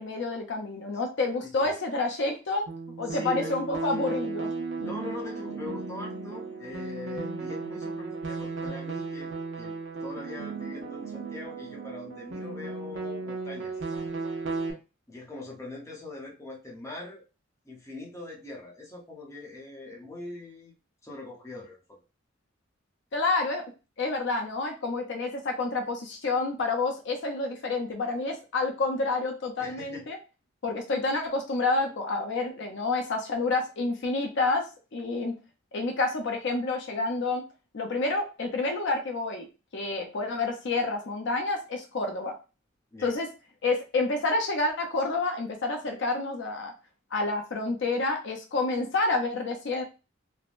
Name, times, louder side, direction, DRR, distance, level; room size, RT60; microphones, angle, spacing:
voice 1, 0.0-2.6 3.0-4.5 23.1-23.6 24.0-30.2 30.6-35.3 35.7-37.4 37.7-39.5 39.7-42.3 43.0-43.3 43.6-46.7 47.1-49.8, left 3 dB, 65° left, 3 dB, 0.5 m, -29 dB
sound 1, 2.7-14.7, right 4 dB, 65° right, 0.7 m, -35 dB
voice 2, 3.1-3.6 4.8-9.3 9.6-9.7 10.0-13.8 15.1-17.2 17.6-22.0 29.6-30.1 42.9-43.2, left 2 dB, 15° left, -2 dB, 0.8 m, -41 dB
3.3 x 2.1 x 2.4 m, 0.31 s
head